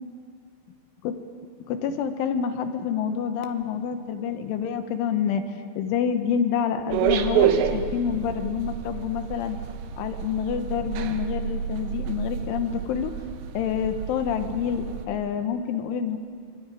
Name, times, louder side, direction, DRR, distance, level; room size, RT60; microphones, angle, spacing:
voice 1, 1.7-5.4 5.8-9.6 10.0-13.1 13.6-16.2, left 7 dB, 75° left, 7 dB, 3.5 m, -27 dB
sound 1, 6.9-15.1, right 8 dB, 70° right, 3.1 m, -28 dB
26.0 x 23.0 x 9.1 m, 2.3 s
omnidirectional pair, 5.9 m